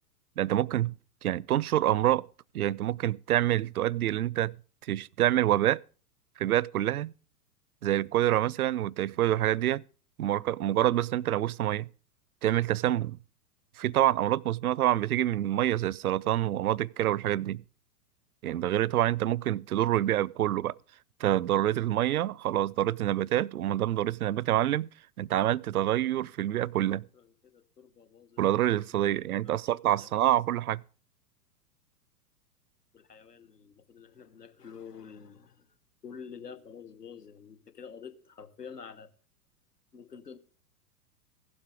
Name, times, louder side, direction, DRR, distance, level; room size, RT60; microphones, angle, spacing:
voice 1, 0.4-0.9 1.2-2.2 2.5-4.5 4.9-5.8 6.4-7.1 7.8-9.8 10.2-11.9 12.4-13.2 13.8-17.6 18.4-20.7 21.2-24.9 25.2-27.1 28.4-30.8, right 13 dB, 65° right, 0.5 m, -27 dB
voice 2, 27.1-28.4 28.8-29.6 30.0-30.2 30.5-30.6 32.9-35.7 36.0-39.1 39.9-40.4, left 6 dB, 80° left, 1.2 m, -48 dB
16.0 x 12.0 x 3.6 m
figure-of-eight pair, 100°, 48 cm